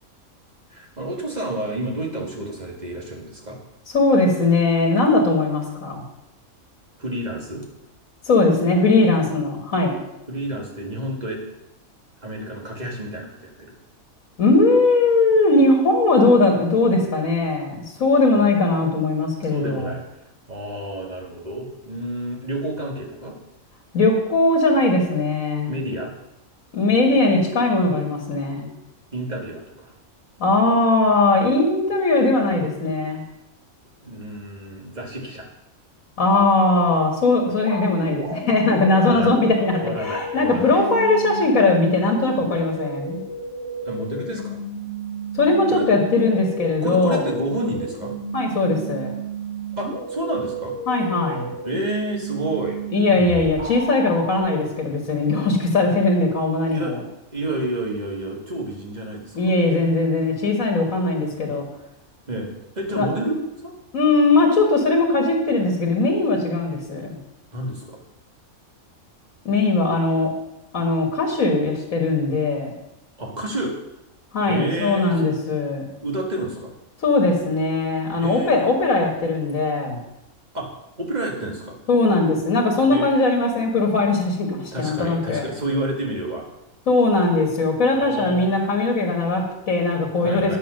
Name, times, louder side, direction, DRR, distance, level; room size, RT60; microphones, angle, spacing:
voice 1, 0.7-3.6 7.0-7.6 10.3-11.5 12.2-13.7 19.4-23.4 25.7-26.1 29.1-30.0 34.0-35.5 39.1-39.3 39.8-40.9 43.8-44.6 45.7-45.9 46.8-48.1 49.7-50.7 51.6-52.8 56.7-57.0 57.3-59.5 62.3-62.5 62.8-63.7 67.5-68.0 73.2-73.8 74.5-75.3 76.0-76.7 78.2-78.7 80.5-80.7 81.0-81.8 82.8-83.0 84.7-86.4 87.9-88.5 90.2-90.6, right 1 dB, 30° right, -1 dB, 2.0 m, -30 dB
voice 2, 3.9-6.0 8.3-10.0 14.4-19.9 23.9-25.7 26.7-28.7 30.4-33.2 36.2-43.2 45.3-47.2 48.3-49.2 50.9-51.5 52.9-57.0 59.4-61.6 62.9-63.1 63.9-67.2 69.5-70.3 70.7-72.7 74.3-75.9 77.0-80.0 81.9-85.4 86.9-90.6, left 2 dB, 65° left, 1 dB, 1.9 m, -19 dB
sound 1, 37.6-54.4, right 1 dB, 60° right, 3.2 m, -32 dB
9.1 x 6.7 x 6.4 m, 0.90 s
omnidirectional pair, 1.5 m